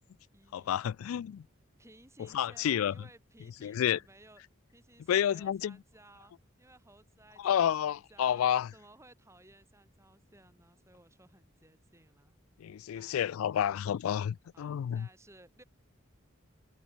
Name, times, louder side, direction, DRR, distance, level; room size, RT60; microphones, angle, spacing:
voice 1, 0.0-0.8 1.8-4.4 4.7-8.4 8.7-12.3 12.9-13.2 14.5-15.6, right 2 dB, 15° right, 5.1 m, -59 dB
voice 2, 0.5-1.5 2.2-2.9 3.6-4.0 5.1-5.8 7.4-8.7 12.6-15.1, left 9 dB, 90° left, 0.3 m, -30 dB
head